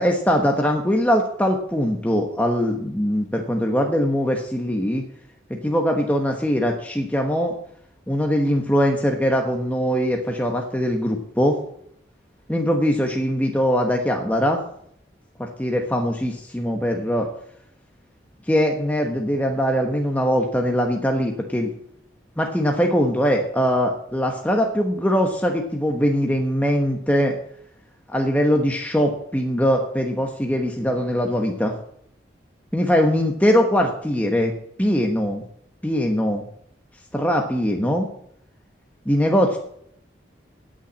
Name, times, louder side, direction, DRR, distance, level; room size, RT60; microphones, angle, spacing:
voice 1, 0.0-5.0 5.5-7.6 8.1-11.6 12.5-14.6 15.4-17.3 18.5-21.7 22.4-27.3 28.1-31.7 32.7-34.5 34.8-35.4 35.8-36.4 37.1-38.1 39.0-39.6, equal, 10° left, 2 dB, 1.1 m, -21 dB
9.3 x 8.8 x 8.5 m, 0.70 s
head